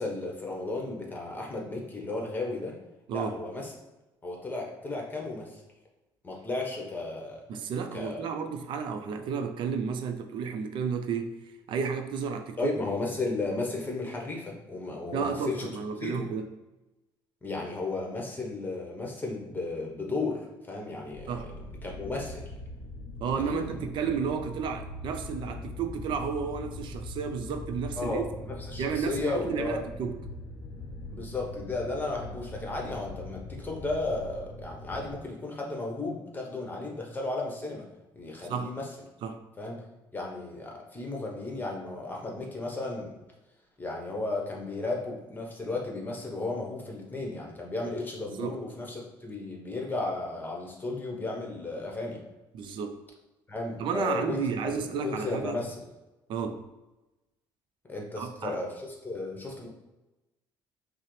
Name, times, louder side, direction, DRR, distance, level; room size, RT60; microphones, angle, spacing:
voice 1, 0.0-2.7 3.1-3.7 4.2-5.6 6.2-7.4 7.9-8.3 12.6-15.7 16.0-16.3 17.4-21.4 21.8-22.5 23.5-23.6 28.0-29.8 31.1-37.8 38.1-38.9 39.6-39.8 40.1-43.1 43.8-52.2 53.5-55.7 57.9-59.7, left 2 dB, 20° left, 0 dB, 0.9 m, -34 dB
voice 2, 7.5-12.7 15.1-16.4 21.3-21.5 23.2-28.2 28.8-30.2 38.4-38.7 39.2-39.4 48.3-48.6 52.5-53.0 53.8-55.6 56.3-56.6 58.2-58.6, right 6 dB, 65° right, 6 dB, 0.4 m, -32 dB
sound 1, 21.1-35.1, left 2 dB, 45° left, 0.6 m, -42 dB
5.5 x 2.0 x 3.1 m, 1.0 s
cardioid pair, 110°, 9 cm